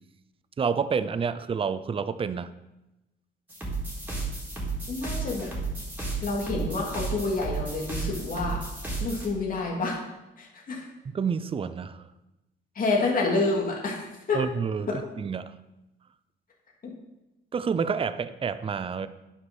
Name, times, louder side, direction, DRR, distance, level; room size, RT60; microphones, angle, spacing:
voice 1, 0.6-2.5 11.0-12.1 14.3-15.6 17.5-19.1, right 6 dB, 30° right, 14 dB, 0.5 m, -29 dB
sound 1, 3.5-9.3, right 3 dB, 10° right, 3.8 m, -33 dB
voice 2, 4.9-5.5 6.2-8.6 9.0-10.0 10.4-10.8 12.7-14.0 14.3-14.4 14.9-15.0, left 3 dB, 45° left, -2 dB, 2.7 m, -28 dB
9.5 x 6.0 x 6.3 m, 0.96 s
cardioid pair, 90°, 20 cm